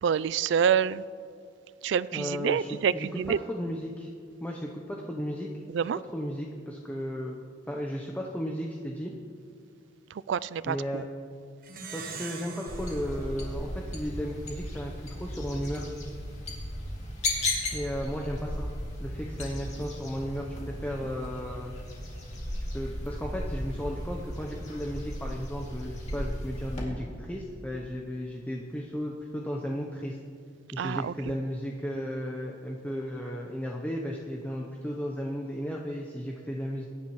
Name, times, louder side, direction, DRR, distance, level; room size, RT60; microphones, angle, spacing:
voice 1, 0.0-1.0 1.8-3.4 5.7-6.0 10.1-11.0 30.8-31.3, right 7 dB, 65° right, 19 dB, 0.3 m, -27 dB
voice 2, 2.1-4.1 4.4-5.5 6.1-7.4 7.7-9.1 10.6-11.1 11.9-15.9 17.7-18.7 19.0-21.8 22.7-30.2 30.7-36.9, equal, 10° left, -1 dB, 0.8 m, -34 dB
Plucked string instrument, 11.6-14.4, right 5 dB, 50° right, 1.1 m, -44 dB
sound 1, 12.7-26.8, left 1 dB, 35° left, 2.4 m, -36 dB
22.0 x 10.5 x 3.1 m, 2.3 s
head